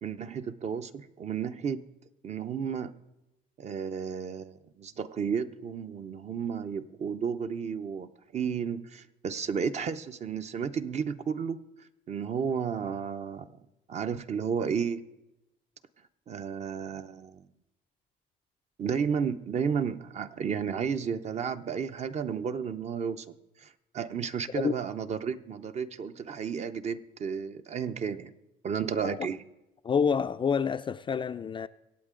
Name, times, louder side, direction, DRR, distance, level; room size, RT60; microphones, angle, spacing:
voice 1, 0.0-1.8 2.2-3.0 3.6-11.6 12.1-13.5 13.9-15.0 16.3-17.4 18.8-23.3 23.6-28.3 28.6-29.4, right 6 dB, 40° right, 0.7 m, -32 dB
voice 2, 29.8-31.7, left 6 dB, 30° left, 0.4 m, -28 dB
24.5 x 8.3 x 3.8 m
cardioid pair, 110°, 17 cm